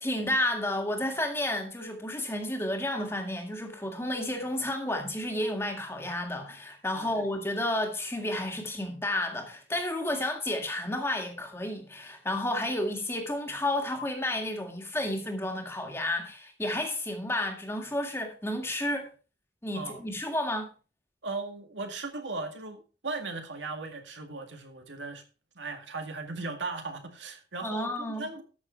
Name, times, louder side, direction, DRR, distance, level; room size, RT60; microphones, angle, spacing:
voice 1, 0.0-19.1 19.6-20.7 27.6-28.3, left 1 dB, 15° left, 1.9 m, -31 dB
voice 2, 7.0-7.3 19.7-20.0 21.2-25.2 25.6-28.4, right 3 dB, 80° right, 2.0 m, -37 dB
13.5 x 6.4 x 4.4 m
head